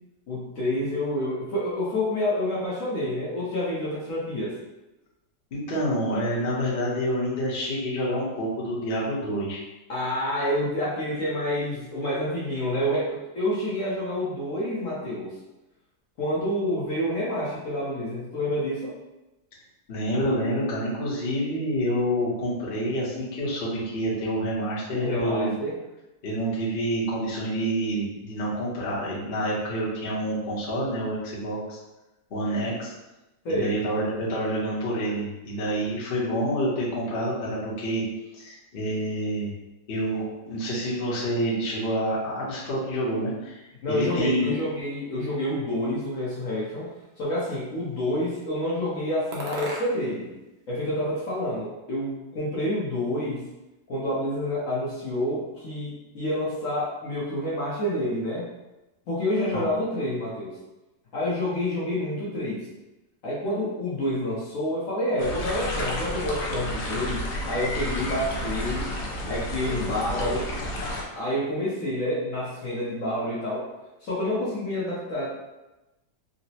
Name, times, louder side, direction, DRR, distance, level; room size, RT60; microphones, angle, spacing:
voice 1, 0.3-4.5 9.9-15.3 16.2-18.9 24.9-25.7 33.4-33.8 43.8-46.9 47.2-50.4 50.7-53.5 53.9-58.4 59.1-60.5 61.1-62.7 63.2-67.2 67.5-68.9 69.2-70.5 71.2-73.6 74.0-75.3, left 1 dB, 60° left, -7 dB, 1.1 m, -28 dB
voice 2, 5.5-9.6 19.9-25.5 26.2-31.8 32.3-32.9 33.5-38.0 38.3-39.5 39.9-43.6 43.9-44.5 59.5-59.6, equal, 45° left, -7 dB, 0.9 m, -28 dB
sound 1, 46.1-47.1 47.8-48.4 49.3-50.3 50.5-51.6, right 1 dB, 60° right, 0.6 m, -40 dB
sound 2, 65.2-71.0, left 1 dB, 80° left, 1.2 m, -31 dB
3.9 x 2.1 x 2.8 m, 1.0 s
omnidirectional pair, 1.8 m